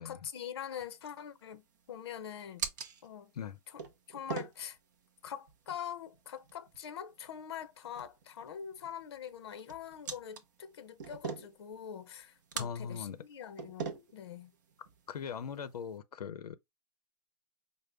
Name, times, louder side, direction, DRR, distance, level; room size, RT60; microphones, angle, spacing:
voice 1, 0.0-2.7 3.0-3.3 3.7-3.8 4.1-4.8 5.2-14.5, left 9 dB, 40° left, 0.7 m, -44 dB
sound 1, 0.6-16.0, right 6 dB, 30° right, 0.6 m, -46 dB
voice 2, 12.6-13.2 15.1-16.6, left 7 dB, 80° left, 0.6 m, -40 dB
5.1 x 2.1 x 3.3 m
hypercardioid pair, 175°, 20 cm